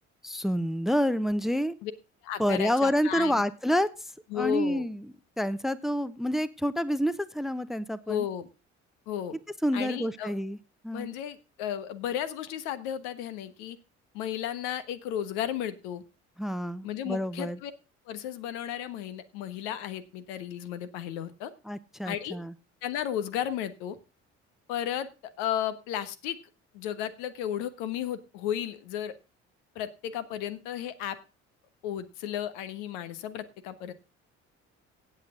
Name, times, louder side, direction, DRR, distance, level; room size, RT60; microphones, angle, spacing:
voice 1, 0.2-1.7 2.4-3.9 4.3-5.1 5.4-8.3 9.6-10.6 10.8-11.1 16.4-17.6 21.6-22.5, equal, ahead, 17 dB, 0.8 m, -28 dB
voice 2, 2.2-3.4 4.3-4.8 8.1-8.5 9.1-9.4 9.7-10.3 10.9-13.8 14.1-16.0 16.8-17.7 18.1-21.5 22.0-22.4 22.8-24.0 24.7-25.1 25.4-26.4 26.7-29.2 29.7-31.2 31.8-33.9, left 10 dB, 65° left, 13 dB, 1.3 m, -34 dB
16.5 x 8.1 x 3.7 m, 0.30 s
figure-of-eight pair, 50°, 37 cm